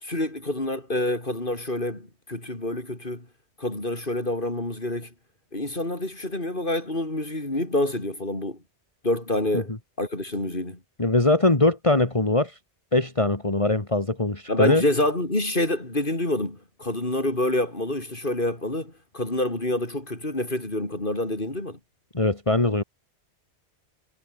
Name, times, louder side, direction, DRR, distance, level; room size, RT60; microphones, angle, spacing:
voice 1, 0.0-3.3 3.6-5.1 5.5-8.6 9.0-10.8 14.5-21.8, left 1 dB, 45° left, 4.8 m, -27 dB
voice 2, 11.0-12.6 12.9-14.8 22.1-22.8, left 2 dB, 25° left, 2.4 m, -21 dB
omnidirectional pair, 1.2 m